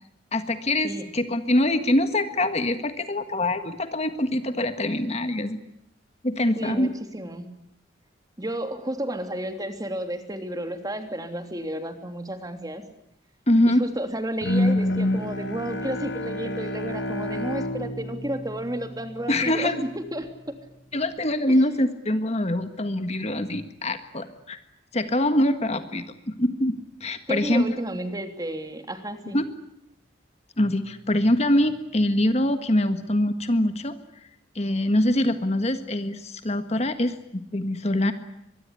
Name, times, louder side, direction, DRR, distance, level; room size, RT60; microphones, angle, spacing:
voice 1, 0.3-5.6 6.2-6.9 13.5-13.8 19.3-19.8 20.9-24.6 24.9-27.7 29.3-29.5 30.6-33.9 34.6-38.1, left 1 dB, 35° left, 9 dB, 1.6 m, -24 dB
voice 2, 6.6-7.4 8.4-12.8 13.7-20.3 21.5-21.6 27.3-29.4, right 1 dB, 20° right, 7 dB, 3.1 m, -32 dB
Bowed string instrument, 14.4-19.5, left 1 dB, 75° left, 4.8 m, -28 dB
24.5 x 21.5 x 9.9 m, 0.80 s
head